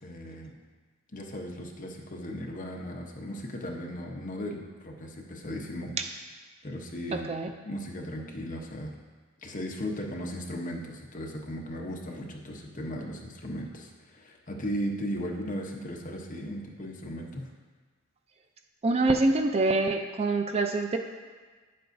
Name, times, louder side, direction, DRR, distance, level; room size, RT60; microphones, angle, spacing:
voice 1, 0.0-0.5 1.1-5.9 6.6-7.3 7.6-8.9 9.4-17.4, equal, 40° left, 0 dB, 0.9 m, -36 dB
voice 2, 7.1-7.5 18.8-21.0, right 2 dB, 30° right, 5 dB, 0.4 m, -25 dB
9.2 x 7.7 x 2.6 m, 1.4 s
head